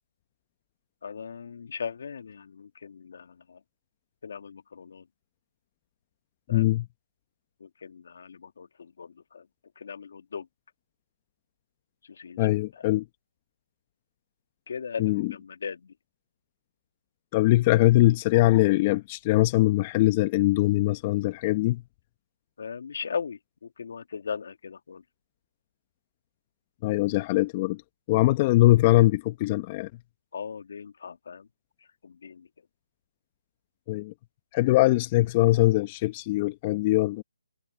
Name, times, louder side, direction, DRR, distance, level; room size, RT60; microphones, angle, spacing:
voice 1, 1.0-3.6 4.2-5.0 6.5-6.7 7.6-9.4 9.8-10.5 12.1-12.5 14.7-15.9 22.6-25.0 30.3-31.5 32.0-32.5, left 6 dB, 60° left, 2.1 m, -38 dB
voice 2, 6.5-6.9 12.4-13.0 15.0-15.3 17.3-21.8 26.8-27.8 28.1-29.9 33.9-34.1 34.5-37.2, left 18 dB, 30° left, 0.9 m, -22 dB
hypercardioid pair, 155°, 0 cm